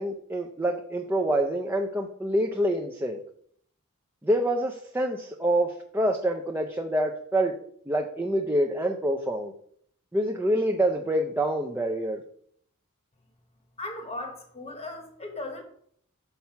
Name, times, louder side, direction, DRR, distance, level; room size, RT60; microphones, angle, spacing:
voice 1, 0.0-3.2 4.2-7.5 7.9-9.5 10.1-12.2, right 1 dB, 10° right, 2 dB, 0.5 m, -26 dB
voice 2, 13.8-15.6, left 2 dB, 30° left, 4 dB, 1.0 m, -37 dB
5.8 x 4.3 x 5.7 m, 0.64 s
head